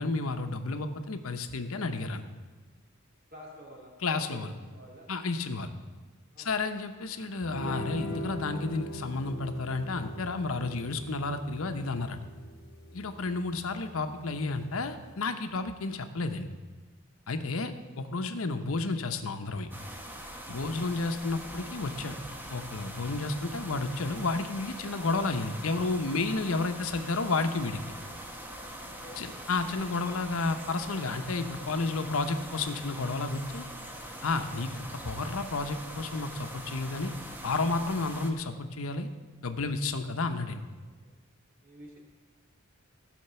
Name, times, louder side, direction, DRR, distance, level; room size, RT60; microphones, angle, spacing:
voice 1, 0.0-2.2 4.0-4.5 5.1-5.7 6.4-12.2 12.9-16.5 17.3-19.7 20.5-22.2 22.5-27.8 29.2-33.7 34.2-37.1 37.4-39.1 39.4-40.6, left 3 dB, 85° left, 8 dB, 0.8 m, -31 dB
voice 2, 3.3-5.1 6.3-6.5 13.1-13.3 17.4-17.6 20.4-20.7 29.0-29.4 34.1-34.6 40.8-41.1 41.6-42.0, equal, 45° right, -3 dB, 2.9 m, -51 dB
sound 1, 7.4-15.2, equal, 50° left, 1.2 m, -42 dB
sound 2, 19.7-38.3, right 1 dB, 10° right, 0.9 m, -43 dB
15.0 x 5.2 x 6.8 m, 1.4 s
head